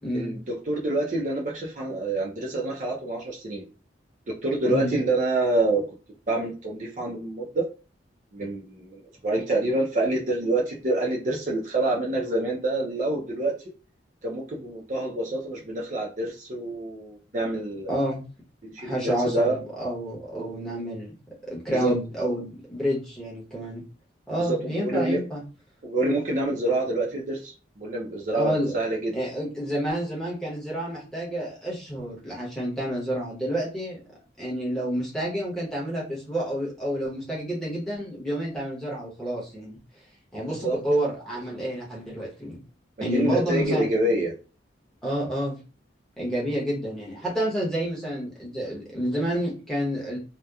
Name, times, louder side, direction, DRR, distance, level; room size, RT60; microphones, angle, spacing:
voice 1, 0.0-0.3 4.7-4.9 17.9-18.2 18.8-21.1 21.4-23.8 24.3-25.4 28.3-28.7 29.1-34.0 34.4-39.8 40.3-42.6 43.0-43.9 45.0-45.6 46.2-50.2, equal, 5° left, -5 dB, 0.9 m, -29 dB
voice 2, 0.7-3.7 4.4-5.9 6.3-7.6 8.3-13.5 14.2-18.0 18.6-19.6 20.3-20.7 21.7-21.9 24.4-25.2 25.8-29.1 40.6-40.8 43.0-44.3, right 2 dB, 40° right, -2 dB, 0.5 m, -27 dB
2.7 x 2.1 x 2.3 m, 0.35 s
head